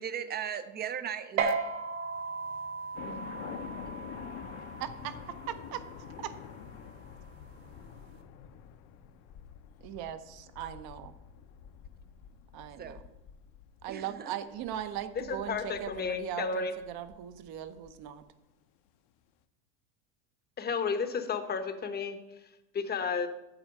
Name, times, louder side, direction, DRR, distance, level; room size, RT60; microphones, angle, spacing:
voice 1, 0.0-1.6 12.8-13.0 13.9-14.4, right 8 dB, 20° right, 12 dB, 0.5 m, -37 dB
sound 1, 1.4-8.2, right 5 dB, 75° right, 1.5 m, -37 dB
sound 2, 2.9-18.1, left 8 dB, 55° left, 0.8 m, -48 dB
voice 2, 4.8-5.8 6.2-6.3 9.8-11.1 12.5-13.0 13.8-18.2, right 11 dB, 50° right, 11 dB, 0.8 m, -39 dB
voice 3, 15.3-16.7 20.6-22.2 22.7-23.3, left 5 dB, 20° left, 8 dB, 0.8 m, -32 dB
7.9 x 4.4 x 7.2 m, 0.95 s
supercardioid pair, 110°, 49 cm